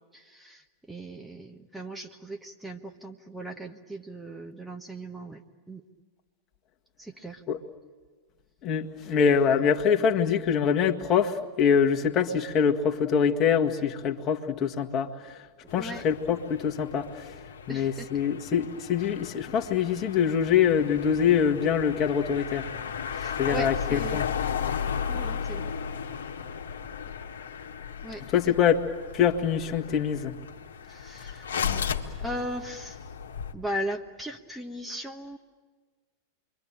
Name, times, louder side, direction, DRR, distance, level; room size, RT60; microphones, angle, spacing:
voice 1, 0.1-5.8 7.0-7.4 9.6-9.7 15.7-16.0 17.7-18.1 23.1-24.2 25.1-25.7 28.0-28.2 30.9-31.5 32.2-33.0 33.5-35.4, right 1 dB, 5° right, 3 dB, 1.3 m, -38 dB
voice 2, 8.6-15.4 15.7-17.3 17.7-22.7 23.4-24.3 28.3-28.8 29.1-30.3, left 7 dB, 35° left, 4 dB, 1.7 m, -24 dB
sound 1, 15.7-33.5, left 7 dB, 65° left, 1.7 m, -35 dB
28.0 x 23.5 x 8.9 m, 1.5 s
figure-of-eight pair, 90°, 0 cm